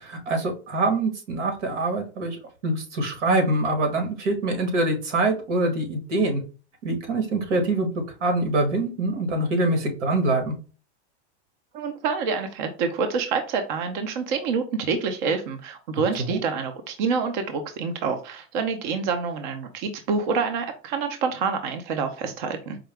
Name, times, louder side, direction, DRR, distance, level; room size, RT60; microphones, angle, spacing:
voice 1, 0.0-6.4 6.8-7.9 8.2-10.5 16.3-16.4, right 2 dB, 90° right, 4 dB, 1.7 m, -24 dB
voice 2, 11.7-22.8, right 5 dB, 45° right, 6 dB, 0.5 m, -27 dB
4.7 x 2.2 x 3.3 m, 0.36 s
supercardioid pair, 175°, 35 cm